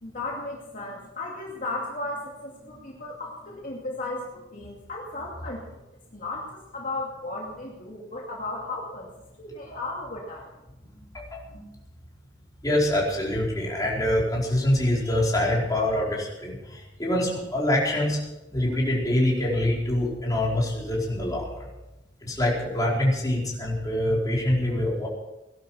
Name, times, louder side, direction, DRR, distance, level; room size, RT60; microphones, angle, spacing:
voice 1, 0.0-5.8 6.1-9.1 9.4-10.5, left 2 dB, 45° left, -3 dB, 2.6 m, -35 dB
voice 2, 11.1-11.7 12.6-18.2 18.5-21.7 22.2-25.1, left 1 dB, 20° left, -3 dB, 4.7 m, -25 dB
18.5 x 11.5 x 5.9 m, 0.96 s
head